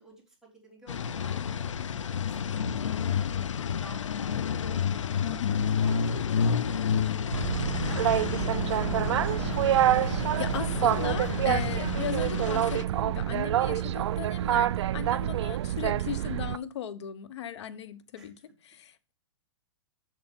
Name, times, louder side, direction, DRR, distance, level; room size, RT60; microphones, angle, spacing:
voice 1, 0.0-2.7 3.1-4.9 5.8-9.5 18.1-18.3, right 3 dB, 5° right, 4.1 m, -52 dB
sound 1, 0.9-12.8, left 7 dB, 85° left, 0.5 m, -30 dB
voice 2, 5.2-5.7 9.8-19.1, left 9 dB, 65° left, 1.1 m, -38 dB
Boat Water vehicle, 7.3-16.6, right 12 dB, 65° right, 0.4 m, -27 dB
7.4 x 6.8 x 5.4 m
hypercardioid pair, 125°, 15 cm